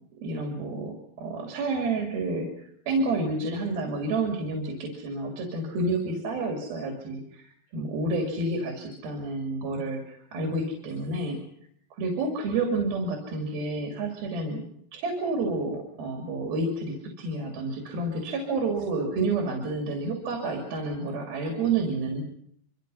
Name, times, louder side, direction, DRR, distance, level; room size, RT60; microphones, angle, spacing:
voice 1, 0.2-11.4 11.9-14.6 14.9-22.2, right 2 dB, 80° right, 2 dB, 4.7 m, -29 dB
25.5 x 24.5 x 5.6 m, 0.70 s
omnidirectional pair, 4.2 m